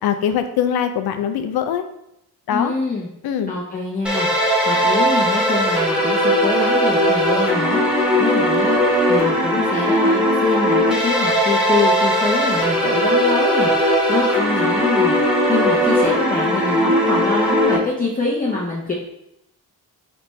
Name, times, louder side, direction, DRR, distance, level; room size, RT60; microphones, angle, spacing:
voice 1, 0.0-1.8 2.5-2.7 3.2-3.5, left 8 dB, 80° left, 7 dB, 0.5 m, -22 dB
voice 2, 2.5-3.1 3.5-18.9, left 3 dB, 25° left, -5 dB, 0.7 m, -25 dB
sound 1, 4.0-17.8, equal, 5° right, 1.2 m, -18 dB
4.1 x 3.4 x 3.0 m, 0.81 s
cardioid pair, 95°, 37 cm